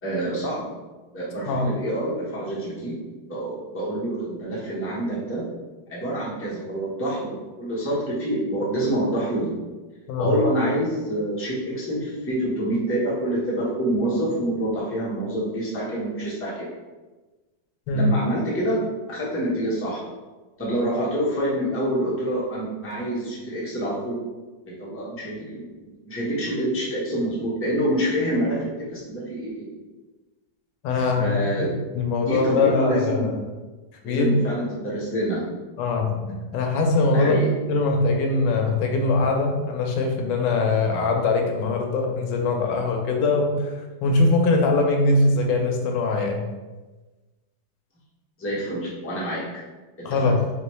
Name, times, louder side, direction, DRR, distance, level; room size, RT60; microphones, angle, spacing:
voice 1, 0.0-0.7 1.1-3.0 3.2-5.4 5.9-9.6 10.2-16.7 17.9-18.8 19.1-20.0 20.6-24.2 24.7-29.7 30.9-31.7 32.2-33.3 34.0-35.4 37.1-37.5 48.4-49.6 50.0-50.3, right 1 dB, 10° left, -7 dB, 0.7 m, -27 dB
voice 2, 30.8-31.3 31.9-33.4 34.0-34.4 35.8-43.7 44.0-46.5 50.0-50.4, left 3 dB, 85° left, 2 dB, 1.3 m, -22 dB
3.9 x 3.0 x 3.1 m, 1.2 s
omnidirectional pair, 1.9 m